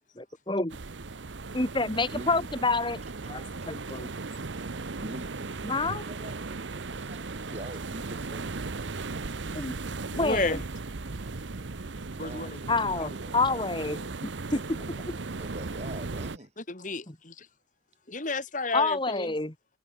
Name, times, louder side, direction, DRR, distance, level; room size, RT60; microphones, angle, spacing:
voice 1, 0.2-0.8 1.5-3.0 3.3-4.1 5.6-6.0 9.5-9.7 10.1-10.6 12.7-14.0 14.5-14.6 17.1-17.2 18.7-19.5, left 3 dB, 25° left, 2.1 m, -28 dB
sound 1, 0.7-16.4, right 3 dB, 85° right, 1.0 m, -37 dB
voice 2, 5.0-8.8 12.1-12.9 15.4-16.5, right 1 dB, 35° right, 7.7 m, -44 dB
voice 3, 10.1-10.7 12.2-12.6 13.0-13.1 13.5-14.1 16.7-17.5 18.1-19.3, left 3 dB, 45° left, 2.6 m, -33 dB
head